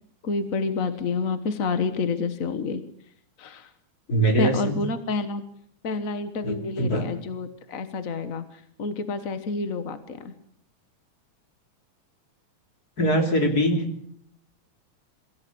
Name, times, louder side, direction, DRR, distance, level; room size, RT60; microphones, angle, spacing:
voice 1, 0.2-2.8 3.4-3.7 4.2-5.5 5.8-10.3, left 4 dB, 60° left, 11 dB, 0.8 m, -29 dB
voice 2, 4.1-4.8 6.4-7.1 13.0-13.8, right 1 dB, 30° left, 4 dB, 3.6 m, -22 dB
23.0 x 15.5 x 8.6 m, 0.68 s
omnidirectional pair, 3.5 m